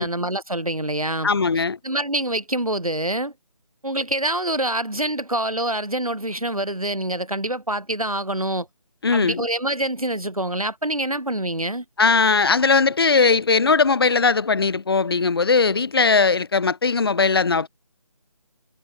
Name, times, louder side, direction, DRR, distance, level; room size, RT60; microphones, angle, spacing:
voice 1, 0.0-1.3 1.6-3.3 3.8-8.7 9.1-11.8, right 1 dB, 80° right, 4.5 m, -26 dB
voice 2, 1.2-1.8 9.0-9.5 12.0-17.7, left 4 dB, 45° left, 3.5 m, -19 dB
figure-of-eight pair, 155°, 18 cm